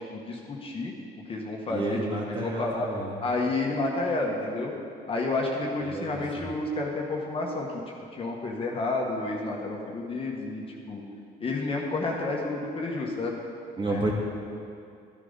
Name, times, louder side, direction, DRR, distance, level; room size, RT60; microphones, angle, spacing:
voice 1, 0.1-0.9 1.3-2.0 2.4-2.9 3.2-4.7 5.1-7.7 8.1-11.0 11.4-13.4 13.9-14.1, left 2 dB, 35° left, -1 dB, 1.5 m, -30 dB
voice 2, 1.7-3.2 5.8-6.5 13.8-14.1, right 2 dB, 30° right, -3 dB, 2.5 m, -31 dB
13.5 x 10.0 x 4.1 m, 2.5 s
cardioid pair, 110°, 17 cm